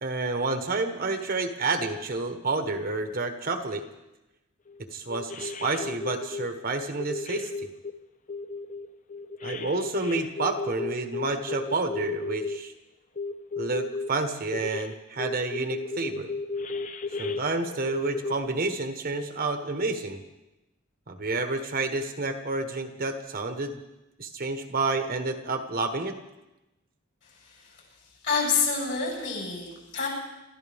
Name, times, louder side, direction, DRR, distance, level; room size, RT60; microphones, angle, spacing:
voice 1, 0.0-3.8 4.9-7.5 9.4-12.7 13.6-16.3 17.2-20.2 21.1-23.8 24.2-26.2, right 3 dB, 45° right, 6 dB, 1.3 m, -29 dB
sound 1, 4.7-4.8 5.1-6.5 7.0-7.9 8.3-12.6 13.2-14.1 14.5-14.9 15.2-18.3, left 3 dB, 40° left, 0.7 m, -34 dB
voice 2, 28.2-30.1, left 5 dB, 55° left, -4 dB, 8.0 m, -27 dB
27.5 x 14.0 x 3.5 m, 0.98 s
head